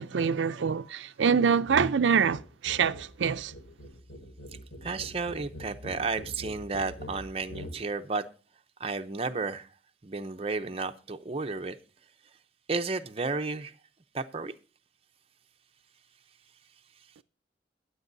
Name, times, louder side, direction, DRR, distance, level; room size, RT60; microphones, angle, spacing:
voice 1, 0.0-3.5, right 6 dB, 85° right, 0.5 m, -25 dB
sound 1, 1.6-1.9 2.2-7.8, equal, 80° left, 2.9 m, -43 dB
voice 2, 4.8-8.2 8.8-9.7 10.0-11.8 12.7-13.7 14.1-14.5, right 3 dB, 30° right, 0.6 m, -32 dB
21.5 x 8.1 x 2.6 m
head